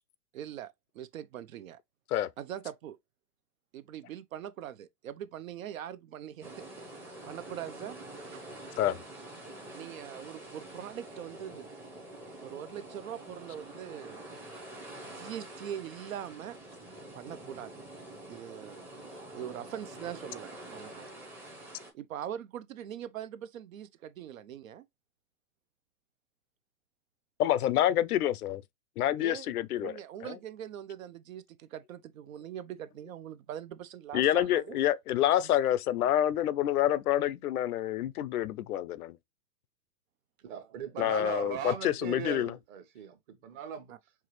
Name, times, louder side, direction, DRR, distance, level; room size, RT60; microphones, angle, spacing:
voice 1, 0.3-1.8 2.4-3.0 3.7-6.7 7.0-8.0 8.3-8.4 9.7-11.7 12.4-14.3 15.1-16.6 17.1-17.8 18.3-18.8 19.3-21.1 21.9-24.9 29.2-29.5 29.8-34.8 41.0-41.3 43.9-44.0, right 10 dB, 60° right, 0.6 m, -42 dB
sound 1, 6.4-21.9, right 1 dB, 5° right, 0.7 m, -46 dB
voice 2, 27.4-28.6 29.0-30.0 30.2-30.3 34.1-39.2 41.0-42.5, left 12 dB, 70° left, 0.6 m, -27 dB
voice 3, 40.4-43.2 43.4-43.9, right 8 dB, 30° right, 1.0 m, -38 dB
4.6 x 2.9 x 3.0 m
hypercardioid pair, 150°, 47 cm